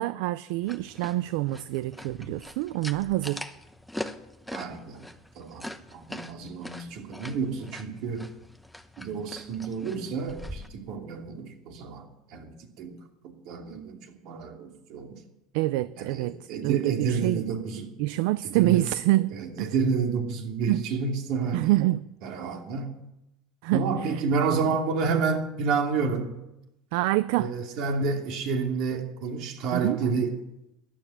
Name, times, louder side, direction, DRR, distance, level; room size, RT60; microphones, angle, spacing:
voice 1, 0.0-3.4 15.5-17.4 18.0-19.7 20.7-20.8 21.5-22.1 23.6-24.2 26.9-27.5 29.7-30.0, right 17 dB, 80° right, 16 dB, 0.4 m, -26 dB
sound 1, 0.6-10.7, left 1 dB, ahead, 0.9 m, -42 dB
voice 2, 4.5-5.0 5.3-8.3 9.0-13.0 13.4-15.2 16.0-17.9 18.4-18.8 19.3-21.7 22.2-22.9 23.7-26.4 27.4-30.3, right 5 dB, 60° right, 3 dB, 2.9 m, -30 dB
14.0 x 11.5 x 7.4 m, 0.90 s
supercardioid pair, 130°, 0 cm